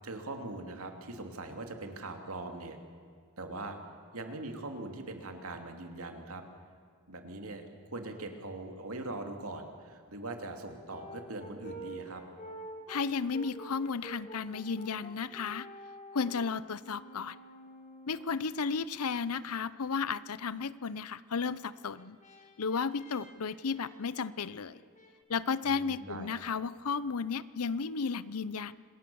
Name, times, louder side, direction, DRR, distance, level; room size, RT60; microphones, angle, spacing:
voice 1, 0.0-2.8 3.4-3.8 4.1-6.4 7.1-12.2 25.6-26.3, right 2 dB, 75° right, 5 dB, 2.8 m, -41 dB
Brass instrument, 10.6-19.0 21.5-25.1, right 1 dB, 35° left, 2.7 m, -49 dB
voice 2, 12.9-15.7 16.1-17.4 18.1-22.2 22.6-24.8 25.3-28.8, left 5 dB, 85° left, 17 dB, 0.7 m, -33 dB
26.5 x 20.0 x 7.0 m, 2.2 s
head